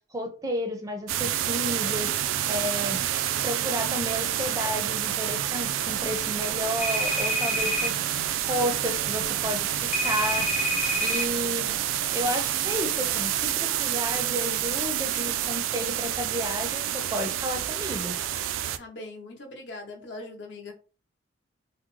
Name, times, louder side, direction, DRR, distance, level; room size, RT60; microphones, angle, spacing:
voice 1, 0.1-2.1 2.5-3.0 3.4-8.0 8.3-10.5 11.0-11.7 12.1-18.1, equal, 20° right, 5 dB, 0.4 m, -32 dB
sound 1, 1.1-18.8, right 11 dB, 85° right, 0.3 m, -28 dB
sound 2, 6.8-7.9 9.9-11.2, left 1 dB, 35° left, 0.5 m, -28 dB
voice 2, 18.8-20.7, left 2 dB, 65° left, 2 dB, 0.8 m, -41 dB
3.5 x 2.0 x 3.0 m, 0.36 s
head